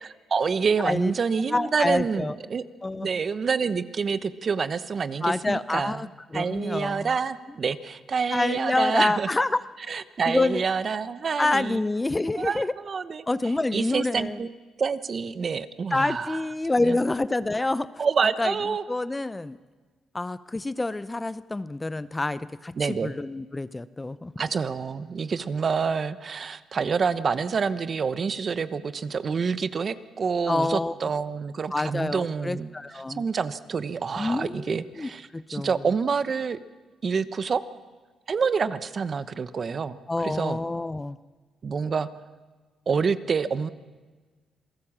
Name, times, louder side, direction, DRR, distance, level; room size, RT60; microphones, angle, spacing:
voice 1, 0.0-2.6 3.0-9.3 9.9-11.8 12.3-13.2 13.7-14.5 14.8-16.4 16.8-17.0 18.0-18.8 22.8-23.1 24.4-32.7 33.1-36.6 37.0-37.6 38.3-40.6 41.6-42.1 42.9-43.7, right 5 dB, 45° right, 13 dB, 1.0 m, -27 dB
voice 2, 1.5-2.4 2.8-3.1 5.2-7.1 8.3-9.6 10.3-10.6 11.4-12.7 13.3-14.4 15.9-17.9 18.4-18.5 18.9-19.6 20.1-22.7 23.0-24.3 30.5-30.9 31.7-33.2 34.2-35.7 40.1-41.2, left 2 dB, 15° left, 15 dB, 0.7 m, -27 dB
27.0 x 18.0 x 7.4 m, 1.4 s
cardioid pair, 90°, 0 cm